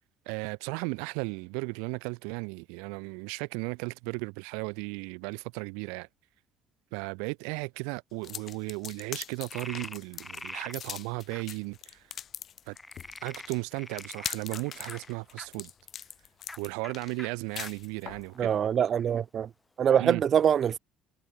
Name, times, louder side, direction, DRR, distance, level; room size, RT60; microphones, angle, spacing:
voice 1, 0.2-6.1 6.9-12.0 12.7-12.8 13.2-15.7 16.6-18.5 20.0-20.2, right 37 dB, 75° right, 1.6 m, -35 dB
sound 1, 8.2-18.3, left 9 dB, 50° left, 0.9 m, -41 dB
Frog, 9.5-10.8 11.3-11.4 12.7-15.5 16.4-16.6 16.8-16.9 17.2-17.3 17.6-17.7 18.3-19.0, left 2 dB, 15° left, 4.7 m, -44 dB
voice 2, 18.4-19.5 19.8-20.8, right 8 dB, 50° right, 0.5 m, -24 dB
hypercardioid pair, 60°, 0 cm